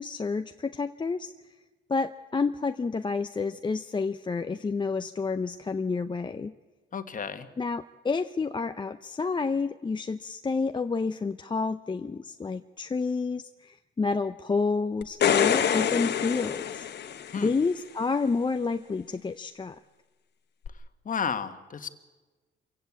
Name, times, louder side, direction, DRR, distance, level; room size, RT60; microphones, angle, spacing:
voice 1, 0.0-1.3 1.9-6.5 7.6-16.9 17.4-19.8, left 4 dB, 25° left, 8 dB, 0.6 m, -29 dB
voice 2, 6.9-7.5 17.3-17.5 21.0-21.9, left 6 dB, 40° left, 9 dB, 1.5 m, -32 dB
sound 1, 15.0-17.6 20.7-20.8, left 9 dB, 55° left, 1.2 m, -26 dB
26.0 x 16.5 x 8.3 m, 1.3 s
cardioid pair, 90°, 20 cm